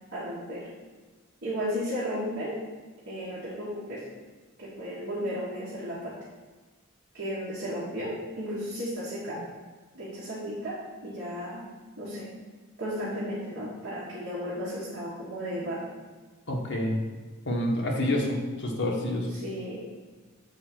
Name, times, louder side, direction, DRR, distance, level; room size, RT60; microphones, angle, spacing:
voice 1, 0.1-0.7 1.4-2.6 3.1-4.0 4.6-6.1 7.1-9.4 9.9-11.6 12.0-12.3 12.8-15.9 19.3-19.8, equal, 60° right, -8 dB, 1.7 m, -34 dB
voice 2, 16.5-17.0 17.4-19.3, left 1 dB, 60° left, -1 dB, 1.4 m, -28 dB
7.1 x 4.4 x 6.2 m, 1.3 s
head